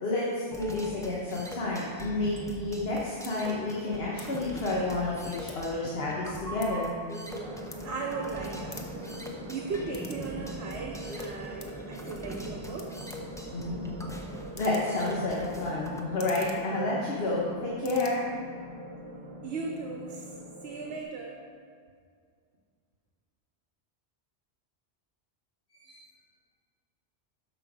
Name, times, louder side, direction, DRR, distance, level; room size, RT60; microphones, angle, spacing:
voice 1, 0.0-6.9 13.5-13.8 14.6-18.2 25.8-26.0, left 2 dB, 65° left, -4 dB, 1.5 m, -30 dB
sound 1, 0.5-16.0, equal, 5° left, 0.8 m, -42 dB
sound 2, 3.2-3.3 4.1-4.3 4.6-5.8 6.1-8.3 8.6-10.3 10.6-11.8 12.4-12.5 12.8-17.5 17.7-18.1, left 3 dB, 35° left, 0.9 m, -49 dB
sound 3, 7.3-21.0, right 1 dB, 30° right, 0.8 m, -42 dB
voice 2, 7.8-8.8 9.5-12.9 19.4-20.4 20.6-21.4, right 4 dB, 75° right, 1 dB, 1.2 m, -37 dB
12.5 x 5.9 x 5.0 m, 2.1 s
omnidirectional pair, 1.1 m